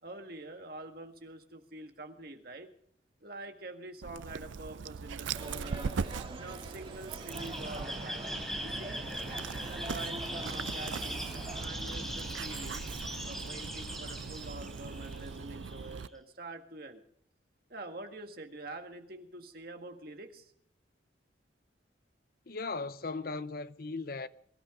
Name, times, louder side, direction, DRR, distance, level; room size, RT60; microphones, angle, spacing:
voice 1, 0.0-2.7 3.2-5.9 6.4-8.2 8.6-9.0 9.6-11.3 11.6-12.8 13.2-17.0 17.7-20.5, right 2 dB, 55° right, 1.8 m, -46 dB
Dog, 4.0-16.1, right 5 dB, 85° right, 0.5 m, -40 dB
sound 1, 5.3-11.7, right 2 dB, 30° right, 2.2 m, -46 dB
sound 2, 7.3-16.1, equal, ahead, 4.1 m, -40 dB
voice 2, 22.5-24.3, left 3 dB, 50° left, 0.7 m, -37 dB
23.0 x 12.5 x 3.8 m
head